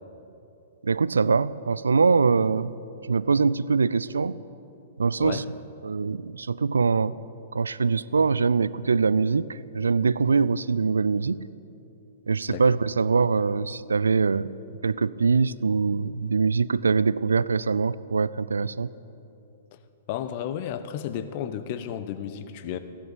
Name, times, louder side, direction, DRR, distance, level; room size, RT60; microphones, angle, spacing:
voice 1, 0.8-2.7 3.1-4.4 5.0-5.4 5.8-7.2 7.5-11.4 12.3-14.5 14.8-18.9, right 5 dB, 75° right, 19 dB, 0.4 m, -23 dB
voice 2, 20.1-22.8, left 10 dB, 45° left, 11 dB, 1.0 m, -32 dB
16.0 x 11.0 x 8.2 m, 2.8 s
figure-of-eight pair, 110°, 0 cm